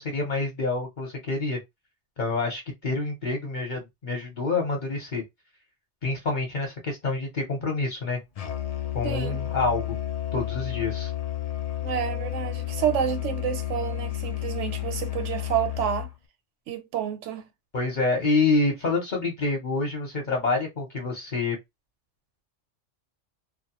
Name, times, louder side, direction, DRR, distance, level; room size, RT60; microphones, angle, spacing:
voice 1, 0.0-1.6 2.2-5.2 6.0-8.2 8.9-10.0 10.3-11.1 17.7-21.6, left 3 dB, 45° left, 0.9 m, -27 dB
Musical instrument, 8.4-16.2, left 14 dB, 60° left, 0.4 m, -31 dB
voice 2, 9.0-9.4 11.8-16.1 16.7-17.5, right 10 dB, 75° right, 1.0 m, -29 dB
2.3 x 2.3 x 2.8 m
omnidirectional pair, 1.3 m